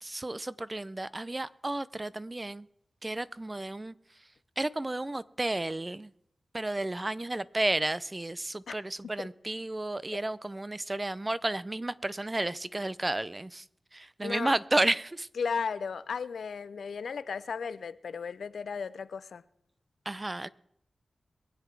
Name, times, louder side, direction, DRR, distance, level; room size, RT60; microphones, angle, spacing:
voice 1, 0.0-2.7 3.0-3.9 4.6-6.1 6.5-13.6 13.9-15.3 20.1-20.5, right 2 dB, 25° right, 0.5 m, -32 dB
voice 2, 14.2-14.5 15.3-19.4, left 5 dB, 90° left, 0.5 m, -35 dB
22.5 x 8.1 x 4.6 m
cardioid pair, 65°, 0 cm